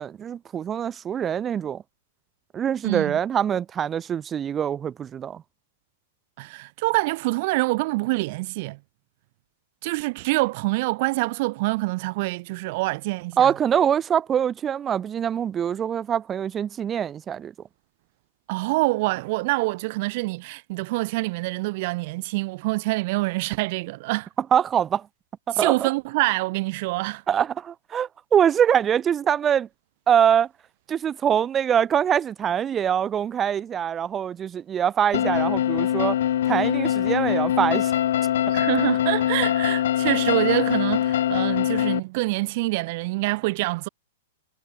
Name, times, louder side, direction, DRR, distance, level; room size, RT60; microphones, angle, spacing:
voice 1, 0.0-1.8 2.5-5.4 13.4-17.5 24.5-25.1 25.5-25.9 27.3-29.7 30.1-30.5 30.9-36.2 36.5-37.9, right 8 dB, 20° right, 0.6 m, -23 dB
voice 2, 2.8-3.2 6.4-8.8 9.8-13.5 18.5-24.3 25.5-27.2 38.5-43.9, right 23 dB, 50° right, 2.5 m, -26 dB
sound 1, 35.1-42.0, left 11 dB, 70° left, 0.5 m, -23 dB
hypercardioid pair, 135°, 0 cm